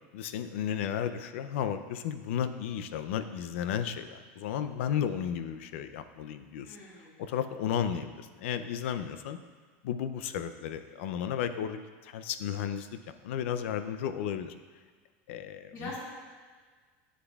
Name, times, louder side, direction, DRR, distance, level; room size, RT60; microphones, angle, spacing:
voice 1, 0.1-6.8 7.2-9.4 9.8-13.0 13.2-14.5 15.3-15.9, left 9 dB, 85° left, 11 dB, 0.5 m, -33 dB
voice 2, 6.6-7.2 15.7-16.0, left 2 dB, 45° left, -5 dB, 2.1 m, -42 dB
9.9 x 7.4 x 2.4 m, 1.5 s
supercardioid pair, 165°, 7 cm